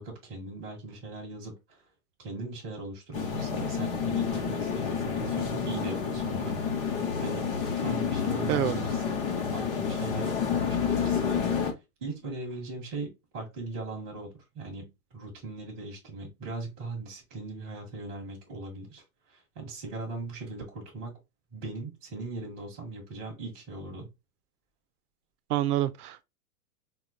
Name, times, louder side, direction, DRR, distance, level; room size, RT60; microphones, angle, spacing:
voice 1, 0.0-1.8 2.2-9.2 9.5-11.7 12.0-19.0 19.3-21.2 21.5-24.1, right 3 dB, 10° right, 0.4 m, -39 dB
sound 1, 3.1-11.7, left 6 dB, 40° left, 0.8 m, -29 dB
voice 2, 8.5-8.8 25.5-26.2, right 13 dB, 85° right, 0.6 m, -27 dB
4.9 x 2.3 x 2.3 m
supercardioid pair, 180°, 44 cm